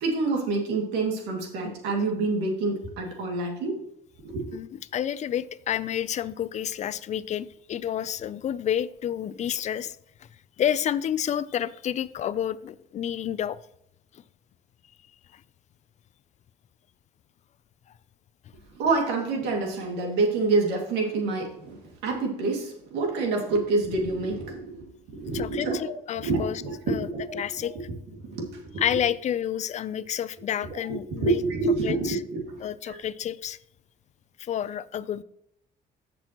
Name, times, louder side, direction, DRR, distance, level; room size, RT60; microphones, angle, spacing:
voice 1, 0.0-3.8 4.2-4.5 18.7-25.8 26.2-27.7 28.2-28.8 30.6-32.6 32.9-33.0, right 3 dB, 90° right, 2 dB, 2.2 m, -27 dB
voice 2, 4.9-10.0 10.6-13.6 15.3-15.4 25.3-26.6 26.9-27.1 27.3-27.7 28.8-31.4 31.8-32.2 32.6-33.6 34.4-35.2, left 10 dB, 45° left, 16 dB, 0.4 m, -29 dB
14.0 x 6.1 x 3.0 m, 0.76 s
cardioid pair, 110°, 17 cm